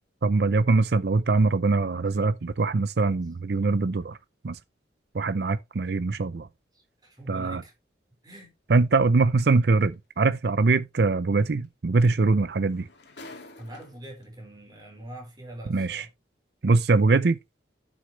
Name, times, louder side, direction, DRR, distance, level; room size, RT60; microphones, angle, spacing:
voice 1, 0.2-4.2 4.4-4.6 5.1-6.5 7.3-7.6 8.7-12.8 15.7-16.0 16.6-17.4, right 3 dB, 60° right, 0.5 m, -22 dB
voice 2, 6.7-7.7 8.2-8.5 13.6-16.1, right 1 dB, 20° right, 4.6 m, -43 dB
sound 1, 9.8-9.9 11.6-11.7 12.0-14.2 15.2-15.3, left 2 dB, 70° left, 2.0 m, -48 dB
11.5 x 6.3 x 3.1 m
head